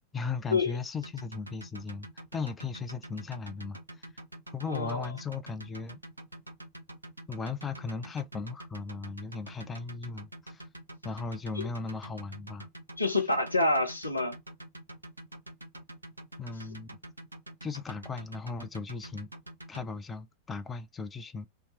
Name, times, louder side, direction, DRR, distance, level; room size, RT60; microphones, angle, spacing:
voice 1, 0.1-3.8 4.5-6.0 7.3-10.7 11.0-12.7 16.4-16.9 17.6-19.3 19.7-21.5, left 4 dB, 15° left, 0.4 m, -37 dB
sound 1, 1.0-19.8, right 1 dB, 80° right, 0.6 m, -46 dB
voice 2, 4.7-5.1 13.0-14.4, left 2 dB, 85° left, 0.6 m, -27 dB
2.8 x 2.2 x 3.2 m
figure-of-eight pair, 90°, 0 cm